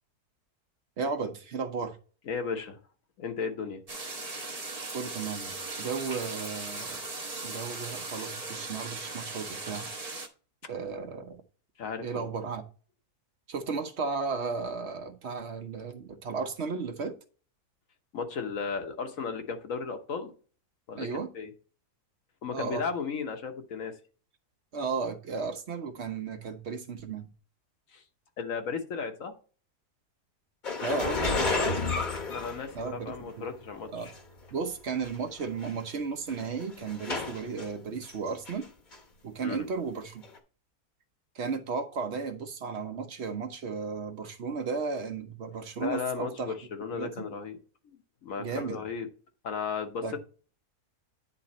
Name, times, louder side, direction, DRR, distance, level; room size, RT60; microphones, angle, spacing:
voice 1, 1.0-2.0 4.9-7.0 7.4-9.9 10.7-11.4 12.0-12.6 13.5-17.1 21.0-21.3 22.5-22.8 24.7-27.3 30.8-31.8 32.7-33.4 33.9-34.1 34.5-38.7 39.2-40.2 41.3-46.5 46.9-47.1 48.4-48.8 50.0-50.2, right 5 dB, 50° right, 1.0 m, -34 dB
voice 2, 2.3-2.8 3.2-3.8 11.8-12.2 18.1-20.3 20.9-21.5 22.4-23.9 27.9-28.0 28.4-29.3 31.4-31.8 32.3-34.1 39.4-39.6 45.8-47.6 47.8-49.1 49.4-50.2, left 5 dB, 60° left, 1.4 m, -35 dB
sound 1, 3.9-10.3, right 3 dB, 30° right, 1.0 m, -38 dB
sound 2, 30.6-33.2 34.1-34.2 35.0-35.1 35.4-35.7 36.3-37.7 38.1-38.6 38.9-39.0 40.2-40.3, left 3 dB, 35° left, 1.1 m, -31 dB
10.0 x 3.8 x 4.2 m
omnidirectional pair, 1.7 m